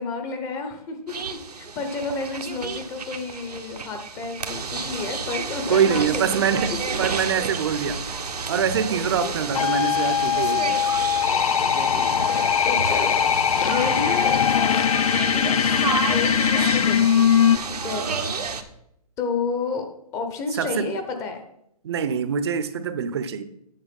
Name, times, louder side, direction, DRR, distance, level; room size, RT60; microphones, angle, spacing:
voice 1, 0.0-6.8 8.9-9.8 11.6-17.3 17.7-18.7 19.2-19.9 20.1-21.4, left 4 dB, 15° left, 6 dB, 0.9 m, -31 dB
sound 1, 1.1-18.6, right 5 dB, 90° right, 1.1 m, -31 dB
voice 2, 5.7-8.1 8.5-10.9 17.9-18.4 20.6-20.9 21.8-23.4, right 7 dB, 45° right, 13 dB, 0.7 m, -24 dB
sound 2, 9.5-17.6, left 9 dB, 65° left, 0.4 m, -21 dB
8.9 x 6.4 x 5.3 m, 0.77 s
hypercardioid pair, 155°, 20 cm